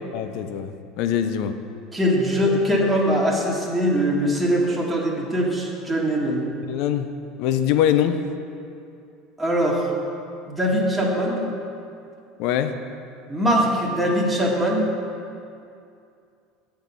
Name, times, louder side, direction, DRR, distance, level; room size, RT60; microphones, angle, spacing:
voice 1, 0.1-0.7 1.0-1.6 6.7-7.1 7.4-8.2 12.4-12.7, left 10 dB, 65° left, 9 dB, 0.6 m, -22 dB
voice 2, 1.9-6.4 9.4-9.9 10.5-11.4 13.3-14.9, equal, 5° right, -4 dB, 1.8 m, -22 dB
8.0 x 6.7 x 5.5 m, 2.5 s
hypercardioid pair, 90°, 0 cm